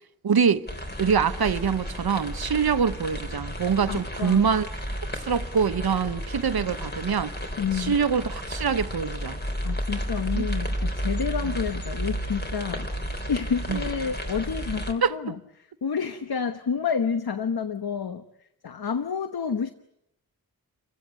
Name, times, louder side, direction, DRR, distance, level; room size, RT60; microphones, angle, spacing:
voice 1, 0.2-0.7 1.0-4.7 5.3-7.3 7.8-9.4 10.4-10.5 13.7-13.8 15.0-15.1, right 6 dB, 75° right, 0.9 m, -24 dB
sound 1, 0.7-14.9, equal, 25° left, 3.7 m, -32 dB
voice 2, 3.9-4.5 7.6-8.0 9.6-12.9 13.3-18.2 18.6-19.7, left 6 dB, 75° left, 1.1 m, -29 dB
29.5 x 16.0 x 9.7 m
wide cardioid pair, 95°, 38 cm